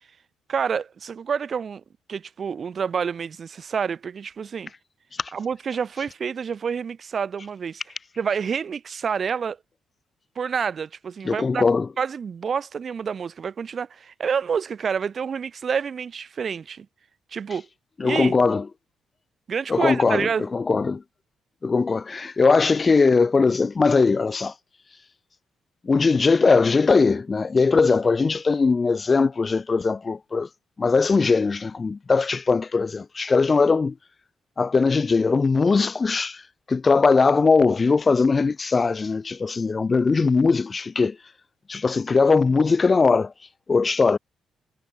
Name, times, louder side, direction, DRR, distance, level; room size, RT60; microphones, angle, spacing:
voice 1, 0.5-1.8 2.1-4.7 5.3-7.8 8.2-9.6 10.4-11.6 12.0-16.9 17.3-17.7 18.0-18.4 19.5-20.5, right 6 dB, 45° right, 3.5 m, -28 dB
voice 2, 11.2-11.9 18.0-18.6 19.7-21.0 21.6-24.5 25.8-30.5 30.8-33.9 34.6-36.4 36.7-41.2 41.7-43.3 43.7-44.2, left 4 dB, 30° left, 0.5 m, -20 dB
cardioid pair, 90°, 0 cm